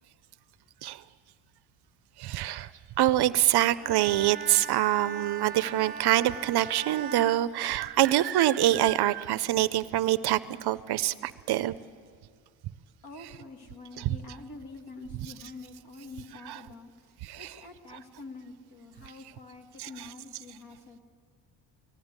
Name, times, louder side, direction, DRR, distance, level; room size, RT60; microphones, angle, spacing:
voice 1, 2.2-2.7 3.0-11.7 13.2-13.4 14.0-14.2 15.1-15.3 16.5-16.7 17.2-17.7 19.8-20.1, right 14 dB, 55° right, 16 dB, 0.6 m, -25 dB
Bowed string instrument, 3.8-8.3, right 6 dB, 20° right, 1.3 m, -40 dB
voice 2, 13.0-16.9 17.4-21.0, left 3 dB, 50° left, 4 dB, 2.3 m, -46 dB
19.0 x 15.0 x 9.5 m, 2.1 s
cardioid pair, 155°, 46 cm